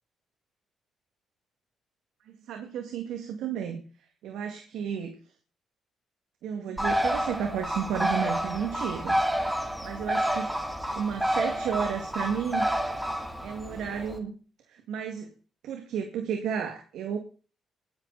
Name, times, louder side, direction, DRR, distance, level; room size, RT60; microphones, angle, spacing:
voice 1, 2.4-3.8 4.2-5.1 6.4-9.2 9.8-10.5 10.9-12.7 13.4-14.4 14.7-15.3 15.6-17.2, right 7 dB, 85° right, 4 dB, 2.3 m, -32 dB
Bird, 6.8-14.2, equal, 10° right, 3.1 m, -29 dB
19.0 x 11.0 x 4.2 m, 0.38 s
cardioid pair, 90°, 0 cm